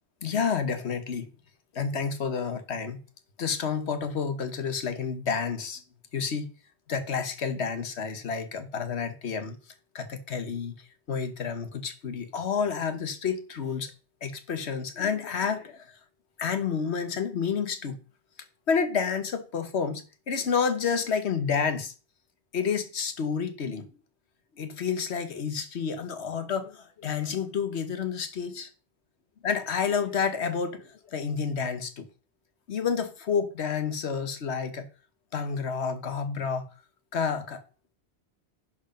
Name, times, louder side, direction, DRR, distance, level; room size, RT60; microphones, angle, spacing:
voice 1, 0.2-1.3 1.7-3.0 3.4-5.8 6.1-6.5 6.9-9.6 9.9-10.7 11.1-13.9 14.2-15.9 16.4-18.0 18.7-21.9 22.5-23.9 24.6-28.7 29.4-32.1 32.7-34.9 35.3-36.7 37.1-37.6, left 6 dB, 80° left, 1.4 m, -29 dB
11.0 x 5.0 x 5.1 m
omnidirectional pair, 1.1 m